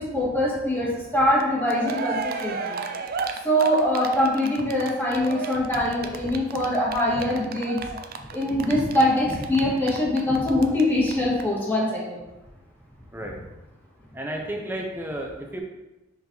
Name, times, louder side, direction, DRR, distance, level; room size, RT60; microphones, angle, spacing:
voice 1, 0.0-2.8 3.4-7.8 8.3-12.2, left 1 dB, 10° left, -7 dB, 1.9 m, -23 dB
Cheering, 1.4-1.5 1.7-10.8 11.1-11.2 11.4-11.5, right 5 dB, 45° right, 0.5 m, -33 dB
voice 2, 14.1-15.6, right 1 dB, 10° right, 1 dB, 0.7 m, -32 dB
5.4 x 4.6 x 3.9 m, 1.0 s
head